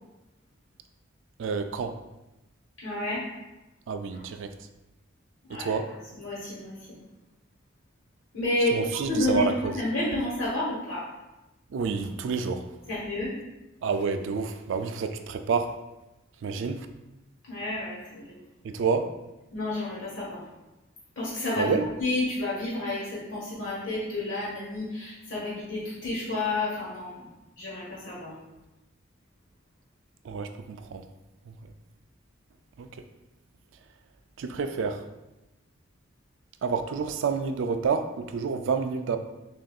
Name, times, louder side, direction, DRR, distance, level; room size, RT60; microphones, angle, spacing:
voice 1, 1.4-1.9 3.9-4.5 5.5-5.9 8.7-9.7 11.7-12.6 13.8-15.7 16.4-16.9 18.6-19.1 21.6-21.9 30.2-31.0 31.6-31.7 32.8-32.9 34.4-35.0 36.6-39.2, right 5 dB, 65° right, 8 dB, 0.3 m, -29 dB
voice 2, 2.8-3.2 4.2-4.3 5.5-5.8 6.1-7.0 8.3-11.1 12.9-13.3 16.5-16.6 17.5-18.4 19.5-20.4 21.2-21.7 22.0-27.3 27.6-28.3, left 2 dB, 70° left, -7 dB, 1.2 m, -30 dB
6.2 x 2.6 x 2.3 m, 0.99 s
head